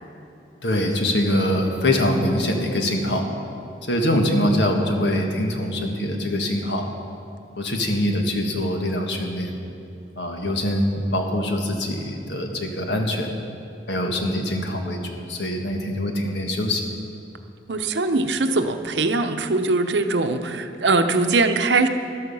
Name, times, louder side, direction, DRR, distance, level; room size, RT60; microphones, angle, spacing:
voice 1, 0.6-3.3 3.8-6.9 7.6-9.5 10.2-13.3 13.9-16.8, left 1 dB, 75° left, 3 dB, 1.6 m, -23 dB
voice 2, 17.7-21.9, right 3 dB, 75° right, 7 dB, 0.8 m, -21 dB
13.5 x 12.0 x 5.6 m, 2.7 s
head